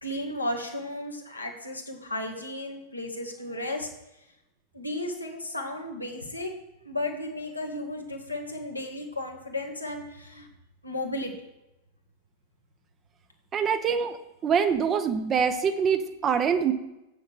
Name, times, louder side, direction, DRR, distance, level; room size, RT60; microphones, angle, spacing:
voice 1, 0.0-3.9 4.7-6.5 6.9-10.5 10.8-11.3, left 1 dB, 85° left, 1 dB, 1.8 m, -34 dB
voice 2, 13.5-14.2 14.4-16.7, right 7 dB, 25° right, 9 dB, 0.9 m, -24 dB
7.8 x 6.8 x 7.6 m, 0.92 s
figure-of-eight pair, 90°, 0 cm